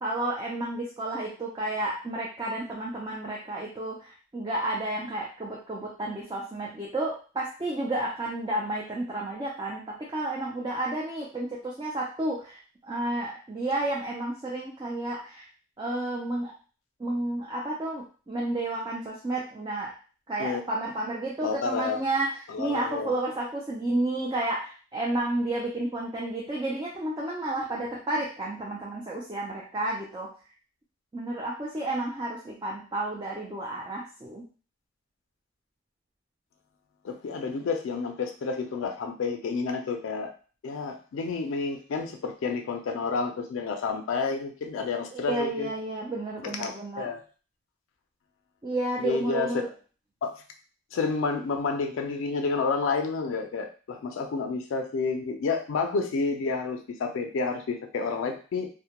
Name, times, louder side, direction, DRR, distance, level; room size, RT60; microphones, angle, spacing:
voice 1, 0.0-15.5 15.8-16.5 17.0-19.9 20.3-30.3 31.1-34.4 45.1-47.1 48.6-49.7, right 2 dB, 20° right, -4 dB, 0.3 m, -31 dB
voice 2, 21.4-22.0 22.5-23.1 37.0-40.3 40.6-45.7 46.4-47.2 49.0-49.5 50.2-50.4 50.9-58.7, left 4 dB, 75° left, 4 dB, 0.3 m, -30 dB
2.1 x 2.1 x 2.9 m, 0.37 s
head